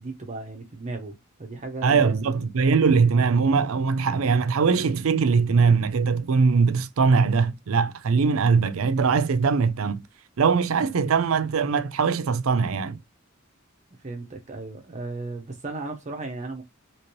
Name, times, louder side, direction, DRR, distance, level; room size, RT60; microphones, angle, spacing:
voice 1, 0.0-2.2 14.0-16.6, right 2 dB, 35° right, 0.6 m, -35 dB
voice 2, 1.8-10.0 10.4-13.0, right 5 dB, 80° right, 0.5 m, -21 dB
3.0 x 2.9 x 2.8 m
head